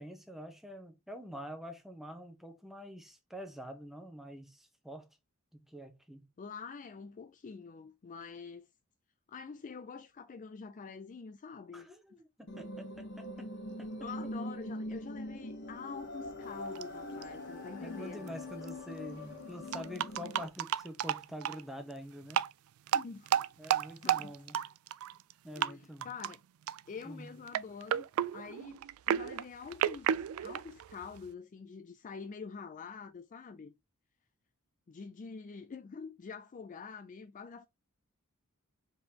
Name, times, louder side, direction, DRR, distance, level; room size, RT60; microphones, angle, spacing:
voice 1, 0.0-5.1 5.5-6.2 11.7-13.5 13.8-13.9 17.8-22.4 23.6-24.6 25.4-26.1 27.0-27.4, equal, ahead, 1.0 m, -46 dB
voice 2, 6.4-8.7 9.3-11.9 14.0-18.4 22.9-23.5 24.0-24.3 25.6-26.4 26.9-33.7 34.9-37.7, left 5 dB, 35° left, 0.4 m, -46 dB
sound 1, 12.5-20.5, left 1 dB, 55° left, 1.0 m, -42 dB
sound 2, 16.7-16.8 17.2-17.3 18.3-18.4 18.6-18.7 19.7-21.6 22.2-22.5 22.9-25.3 25.6-25.7 26.0-26.4 26.7-27.0 27.5-31.3, right 10 dB, 80° right, 0.3 m, -32 dB
4.9 x 3.7 x 2.9 m
head